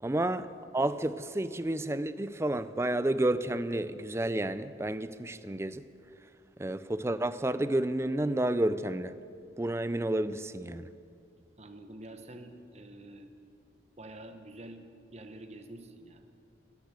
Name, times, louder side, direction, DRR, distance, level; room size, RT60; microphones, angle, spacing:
voice 1, 0.0-5.8 6.6-9.1 9.6-10.9, right 1 dB, 15° right, 13 dB, 0.4 m, -30 dB
voice 2, 11.6-13.3 14.0-16.3, right 1 dB, 35° right, 6 dB, 1.1 m, -47 dB
16.5 x 10.5 x 8.1 m, 2.5 s
head